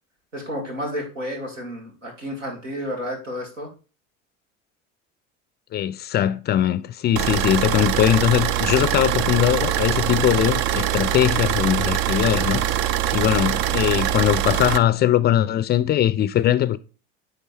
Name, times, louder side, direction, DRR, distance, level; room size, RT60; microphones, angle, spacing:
voice 1, 0.3-3.7, equal, 90° right, 1.9 m, -31 dB
voice 2, 5.7-12.7 13.1-16.8, left 11 dB, 30° left, 0.4 m, -20 dB
sound 1, 7.2-14.8, right 12 dB, 60° right, 0.5 m, -23 dB
9.7 x 3.3 x 3.1 m
hypercardioid pair, 70°, 36 cm